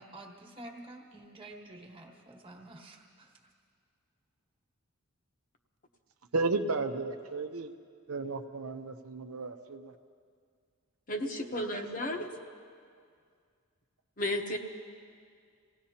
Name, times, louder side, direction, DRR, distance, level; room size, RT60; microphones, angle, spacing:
voice 1, 0.0-3.3, right 1 dB, 25° right, 0 dB, 1.4 m, -49 dB
voice 2, 6.3-7.7 8.1-9.9, right 3 dB, 75° right, 6 dB, 0.8 m, -33 dB
voice 3, 11.1-12.3 14.2-14.6, left 1 dB, 40° left, 3 dB, 1.0 m, -33 dB
27.0 x 17.5 x 2.9 m, 2.1 s
head